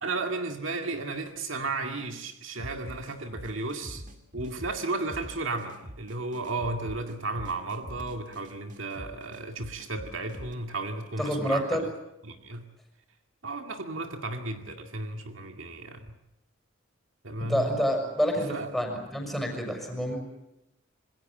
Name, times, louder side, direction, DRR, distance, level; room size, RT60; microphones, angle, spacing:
voice 1, 0.0-4.0 4.3-11.7 12.2-12.6 13.4-16.2 17.2-17.8 18.5-18.7, right 3 dB, 70° right, 5 dB, 2.2 m, -34 dB
sound 1, 2.6-10.5, equal, 40° right, 2.1 m, -44 dB
voice 2, 11.2-11.8 17.5-20.2, equal, ahead, 2 dB, 6.2 m, -28 dB
26.5 x 21.0 x 7.8 m, 0.88 s
head